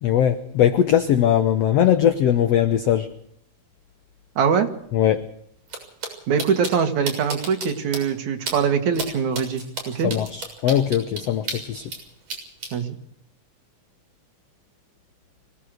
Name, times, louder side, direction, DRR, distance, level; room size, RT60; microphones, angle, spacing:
voice 1, 0.0-3.1 4.9-5.3 10.0-11.9, left 10 dB, 65° left, 1.7 m, -20 dB
voice 2, 4.4-4.7 6.3-10.1 12.7-13.0, right 6 dB, 65° right, 2.9 m, -22 dB
sound 1, 5.7-5.8 6.0-6.1 6.4-6.7 7.1-7.7 7.9-8.0 8.5-8.6 8.9-9.1 9.3-12.0 12.3-12.7, right 3 dB, 50° right, 7.9 m, -30 dB
25.0 x 16.5 x 6.5 m
omnidirectional pair, 3.8 m